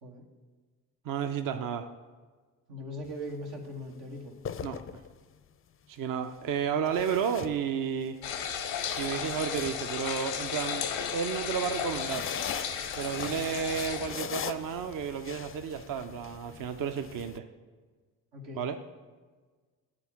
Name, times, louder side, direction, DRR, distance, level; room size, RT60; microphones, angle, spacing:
voice 1, 1.0-1.9 4.6-4.8 5.9-8.2 9.0-12.3 13.0-17.4 18.6-18.8, right 7 dB, 50° right, 8 dB, 0.6 m, -32 dB
voice 2, 2.7-4.3 13.2-13.4 18.3-18.7, equal, 80° right, 1 dB, 1.2 m, -40 dB
sound 1, 3.0-3.3 4.2-5.4 6.9-8.1 8.5-10.6 11.7-17.4, left 8 dB, 30° left, 0.4 m, -41 dB
sound 2, 8.2-14.1, left 8 dB, 90° left, 0.8 m, -34 dB
8.9 x 3.8 x 5.8 m, 1.4 s
hypercardioid pair, 45°, 42 cm